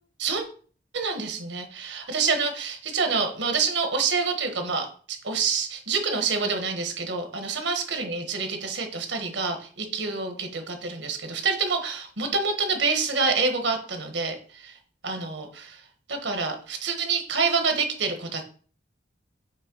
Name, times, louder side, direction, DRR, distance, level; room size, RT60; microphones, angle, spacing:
voice 1, 0.9-14.8 15.0-15.8 16.1-18.4, right 4 dB, 90° right, 5 dB, 1.4 m, -27 dB
7.4 x 3.4 x 5.4 m, 0.43 s
head